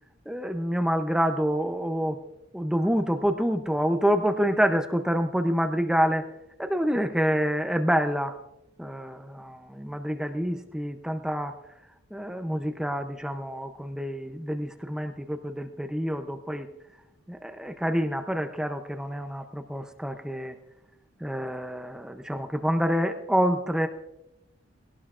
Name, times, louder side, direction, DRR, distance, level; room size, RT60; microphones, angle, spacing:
voice 1, 0.3-2.2 2.5-6.3 6.6-8.4 8.8-11.6 12.1-16.7 17.3-20.6 21.2-23.9, equal, 5° right, 6 dB, 0.6 m, -27 dB
20.5 x 17.5 x 2.5 m, 0.88 s
head